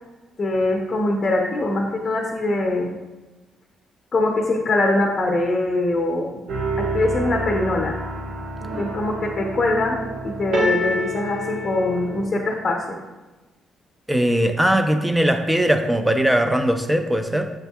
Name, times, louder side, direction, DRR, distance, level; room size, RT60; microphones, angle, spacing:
voice 1, 0.4-3.0 4.1-6.4 6.8-8.0 8.8-10.0 10.2-13.0, left 2 dB, 35° left, 0 dB, 0.6 m, -22 dB
sound 1, 6.5-12.3, equal, 70° right, 1.0 m, -28 dB
voice 2, 14.1-17.5, right 1 dB, 5° right, 7 dB, 0.4 m, -20 dB
7.5 x 2.6 x 2.3 m, 1.2 s
cardioid pair, 90°, 0 cm